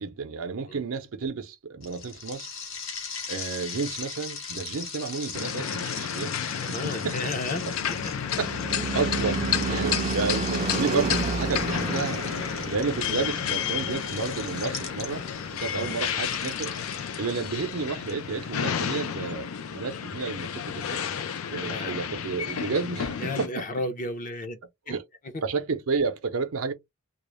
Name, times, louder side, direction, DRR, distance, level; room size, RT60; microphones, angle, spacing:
voice 1, 0.0-2.5 3.3-7.3 7.7-7.8 8.4-8.5 8.9-9.4 9.7-12.2 12.7-15.3 15.6-16.8 17.2-21.0 21.5-23.7 24.9-25.0 25.4-26.7, right 4 dB, 80° right, 0.6 m, -31 dB
sound 1, 1.8-15.4 16.2-18.1, left 5 dB, 65° left, 0.9 m, -39 dB
sound 2, 5.3-23.5, left 8 dB, 85° left, 0.4 m, -31 dB
voice 2, 6.6-7.6 9.7-10.0 15.7-16.0 21.5-22.0 23.2-24.6, left 2 dB, 40° left, 0.7 m, -33 dB
Car passing by / Truck / Engine, 7.4-16.1, right 3 dB, 30° right, 0.4 m, -32 dB
2.4 x 2.0 x 3.0 m
head